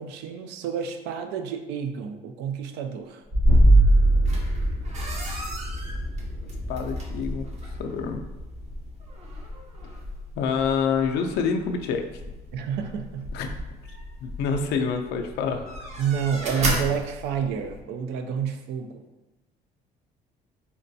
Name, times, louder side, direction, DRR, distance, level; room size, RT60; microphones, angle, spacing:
voice 1, 0.0-3.2 12.5-13.3 16.0-19.0, right 7 dB, 90° right, 7 dB, 0.4 m, -29 dB
sound 1, 3.3-8.9, right 1 dB, 55° right, 1.3 m, -22 dB
sound 2, 4.2-17.8, equal, 40° right, 0.7 m, -36 dB
voice 2, 6.7-7.5 7.8-8.2 10.4-12.1 13.3-13.5 14.2-15.8, left 6 dB, 75° left, 5 dB, 0.4 m, -27 dB
3.7 x 2.2 x 2.6 m, 1.0 s
cardioid pair, 110°, 17 cm